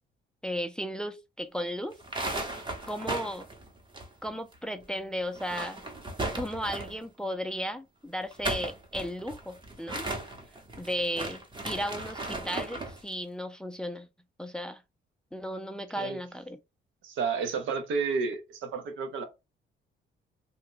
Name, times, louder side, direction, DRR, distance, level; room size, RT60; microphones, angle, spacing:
voice 1, 0.4-2.0 2.9-3.4 4.2-5.8 6.3-10.1 10.8-14.1 14.4-14.8 15.3-16.6, equal, 5° left, 0.4 m, -35 dB
sound 1, 1.9-4.5 4.8-4.9 5.3-7.0 8.1-13.0, right 2 dB, 25° right, 0.9 m, -36 dB
voice 2, 17.0-19.2, right 5 dB, 80° right, 0.8 m, -31 dB
2.6 x 2.2 x 3.7 m
cardioid pair, 90°, 20 cm